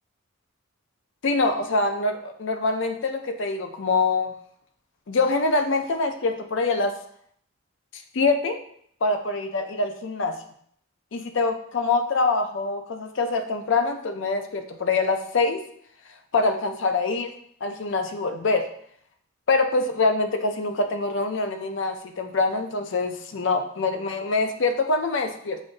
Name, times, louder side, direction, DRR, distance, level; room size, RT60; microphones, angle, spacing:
voice 1, 1.2-4.3 5.1-7.0 8.1-8.6 9.0-10.4 11.1-15.6 16.3-17.3 17.6-18.7 19.5-25.6, left 3 dB, 60° left, 6 dB, 0.5 m, -24 dB
7.0 x 2.5 x 2.5 m, 0.65 s
head